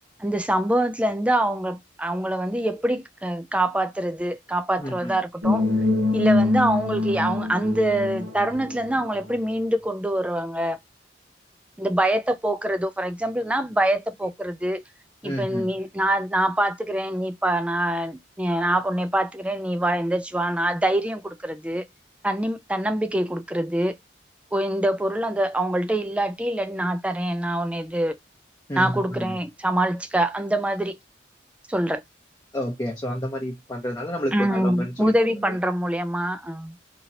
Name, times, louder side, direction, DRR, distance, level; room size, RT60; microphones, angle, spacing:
voice 1, 0.2-5.7 6.1-10.8 11.8-14.8 15.2-21.9 22.2-24.0 24.5-28.2 28.8-31.0 31.7-32.0 34.3-36.7, right 1 dB, 5° right, 0.3 m, -25 dB
voice 2, 4.8-5.2 15.2-15.7 28.7-29.3 32.5-35.6, equal, 20° left, 0.7 m, -30 dB
sound 1, 5.4-9.3, left 3 dB, 50° right, 0.9 m, -24 dB
2.8 x 2.7 x 2.7 m
head